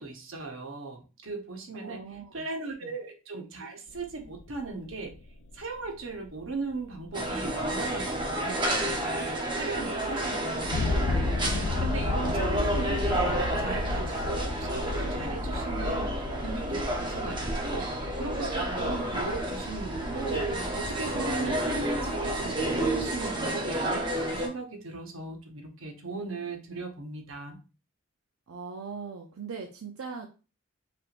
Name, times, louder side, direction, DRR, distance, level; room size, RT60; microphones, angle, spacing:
voice 1, 0.0-5.1 5.5-17.9 18.2-27.6, right 3 dB, 70° right, 3 dB, 1.0 m, -38 dB
voice 2, 1.8-2.4 2.8-2.9 28.5-30.3, right 5 dB, 90° right, 2 dB, 0.6 m, -40 dB
sound 1, 3.9-23.2, left 3 dB, 65° left, 0.4 m, -34 dB
sound 2, 7.1-24.5, right 1 dB, 20° right, 0.8 m, -30 dB
5.8 x 3.5 x 2.5 m, 0.33 s
head